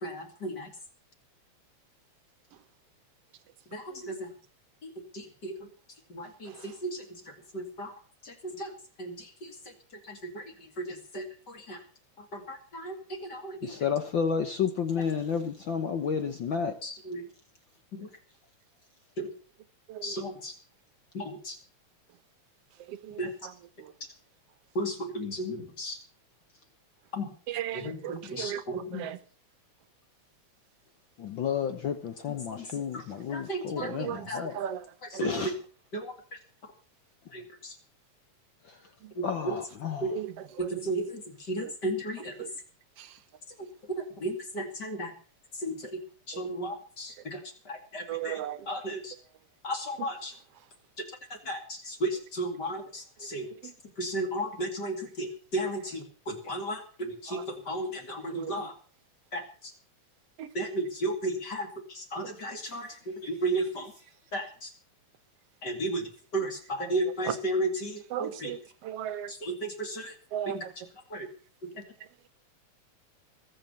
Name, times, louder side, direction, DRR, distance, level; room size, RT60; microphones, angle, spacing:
voice 1, 0.0-0.7 3.7-4.3 5.1-5.5 6.1-7.0 7.5-7.9 8.6-8.7 9.0-9.3 10.1-10.4 10.8-11.8 12.3-12.9 13.2-13.7 16.8-17.2 17.9-18.1 19.2-19.3 20.0-20.5 21.1-21.6 23.2-23.3 24.7-26.0 27.1-27.3 27.7-29.0 32.3-32.7 32.9-33.0 33.3-34.5 35.2-35.5 35.9-36.1 37.3-37.7 39.2-39.6 40.0-40.2 40.6-41.2 41.5-42.3 44.2-45.1 45.6-45.8 46.3-47.4 47.7-48.4 48.7-49.1 49.6-50.3 51.5-53.5 54.0-57.4 57.7-58.7 59.3-59.4 60.5-61.7 61.9-62.9 63.2-63.9 64.3-64.7 65.6-66.1 66.3-68.5 69.3-70.1 70.5-70.6 71.1-71.3, right 1 dB, 35° left, 2.9 m, -34 dB
voice 2, 13.6-16.8 31.2-34.6 35.2-35.5 39.2-40.1, left 7 dB, 65° left, 1.2 m, -31 dB
voice 3, 27.5-29.2 33.8-34.3 34.5-34.8 35.1-35.2 40.1-40.9 41.6-41.7 42.4-42.5 48.1-48.6 57.3-57.4 58.3-58.5 60.4-60.5 66.8-67.0 67.2-67.3 68.1-68.6 68.8-69.3 70.3-70.7, right 11 dB, 65° right, 1.8 m, -35 dB
21.5 x 7.5 x 7.0 m
omnidirectional pair, 3.3 m